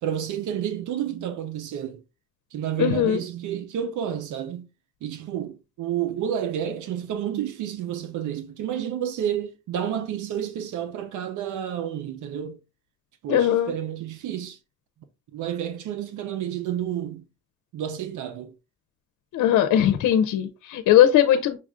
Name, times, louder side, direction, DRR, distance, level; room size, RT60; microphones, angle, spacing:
voice 1, 0.0-2.0 2.5-4.7 5.0-12.6 13.2-14.6 15.3-17.3 17.7-18.5, right 10 dB, 80° right, 0.7 m, -30 dB
voice 2, 2.8-3.2 13.3-13.7 19.3-21.6, left 11 dB, 80° left, 0.6 m, -19 dB
6.0 x 2.4 x 3.6 m
cardioid pair, 90°, 30 cm